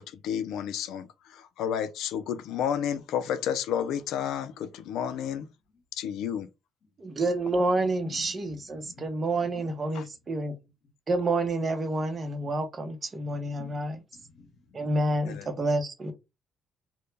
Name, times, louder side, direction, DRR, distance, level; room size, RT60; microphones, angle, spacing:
voice 1, 0.0-5.5 5.9-6.5 9.9-10.0 15.3-15.5, left 9 dB, 85° left, 0.3 m, -31 dB
voice 2, 7.0-10.6 11.1-14.0 14.7-16.1, right 2 dB, 35° right, 0.7 m, -28 dB
voice 3, 8.0-9.9 10.6-10.7 13.6-14.8, left 6 dB, 65° left, 0.8 m, -51 dB
2.1 x 2.0 x 3.1 m
cardioid pair, 90°, 0 cm